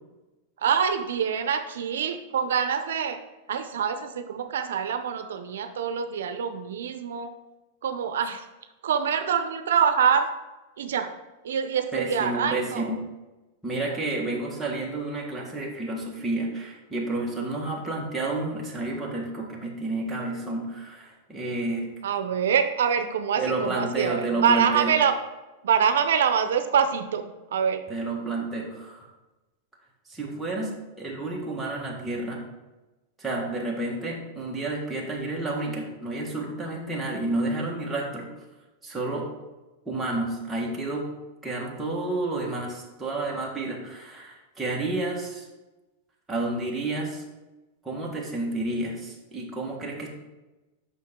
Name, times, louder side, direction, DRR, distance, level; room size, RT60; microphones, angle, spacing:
voice 1, 0.6-3.2 3.5-7.3 7.8-8.4 8.8-10.3 10.8-11.1 11.4-12.9 13.9-14.0 22.0-25.2 25.6-27.8, right 7 dB, 85° right, 9 dB, 0.6 m, -25 dB
voice 2, 11.9-12.9 13.6-21.9 23.4-24.9 27.9-29.1 30.1-32.5 33.2-38.3 38.8-39.3 39.8-41.1 41.4-45.5 46.3-47.2 47.8-50.1, right 2 dB, 5° right, -3 dB, 1.6 m, -30 dB
7.5 x 5.6 x 3.7 m, 1.1 s
supercardioid pair, 135°, 0 cm